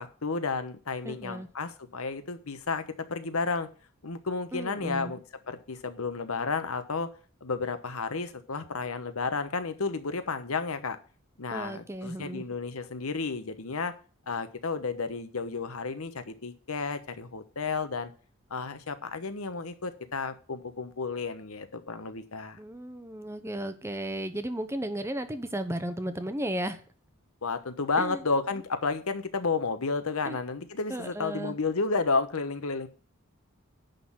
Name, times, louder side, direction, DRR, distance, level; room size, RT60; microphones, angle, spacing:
voice 1, 0.0-2.8 3.1-3.7 4.0-5.2 5.5-7.1 7.4-11.0 11.4-13.9 14.3-18.1 18.5-22.6 27.4-32.9, left 4 dB, 85° left, 10 dB, 1.1 m, -32 dB
voice 2, 1.0-1.5 4.5-5.1 11.5-12.4 22.6-26.8 28.0-28.2 30.3-30.4 30.9-31.6, right 1 dB, 10° right, 10 dB, 0.8 m, -34 dB
10.5 x 3.9 x 7.3 m, 0.39 s
head